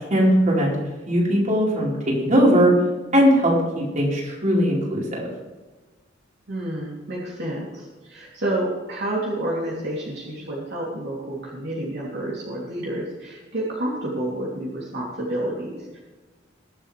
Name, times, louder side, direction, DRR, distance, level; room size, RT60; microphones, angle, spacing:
voice 1, 0.1-2.7 3.1-5.3, equal, 40° right, -4 dB, 4.5 m, -19 dB
voice 2, 6.5-16.0, right 1 dB, 60° right, -5 dB, 3.2 m, -29 dB
22.5 x 7.8 x 3.4 m, 1.3 s
head